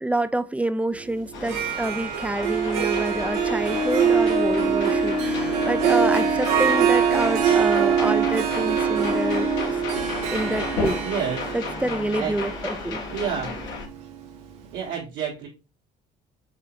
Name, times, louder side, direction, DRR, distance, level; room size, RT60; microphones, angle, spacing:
voice 1, 0.0-9.5 10.3-11.0 11.5-13.0, right 1 dB, 5° right, 0.4 m, -27 dB
sound 1, 1.3-13.9, left 4 dB, 65° left, 1.4 m, -34 dB
Harp, 1.3-14.2, right 6 dB, 85° right, 0.8 m, -23 dB
Thunder, 3.1-10.9, left 4 dB, 85° left, 1.0 m, -39 dB
voice 2, 11.0-11.5 12.2-12.3 13.1-13.5 14.7-15.5, right 7 dB, 70° right, 1.3 m, -29 dB
4.7 x 3.7 x 2.9 m
hypercardioid pair, 55°, 21 cm